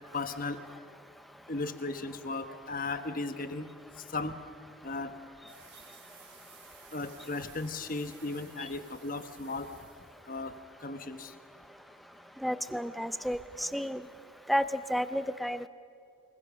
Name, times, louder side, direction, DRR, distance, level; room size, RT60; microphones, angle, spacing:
voice 1, 0.1-0.6 1.5-3.7 4.1-4.3 4.8-5.1 6.9-9.7 10.3-10.5 10.8-11.3, left 3 dB, 45° left, 9 dB, 1.3 m, -36 dB
sound 1, 5.5-10.8, right 5 dB, 60° right, 5.1 m, -56 dB
voice 2, 12.4-14.0 14.5-15.7, equal, ahead, 13 dB, 0.6 m, -31 dB
25.5 x 22.5 x 6.3 m, 2.7 s
head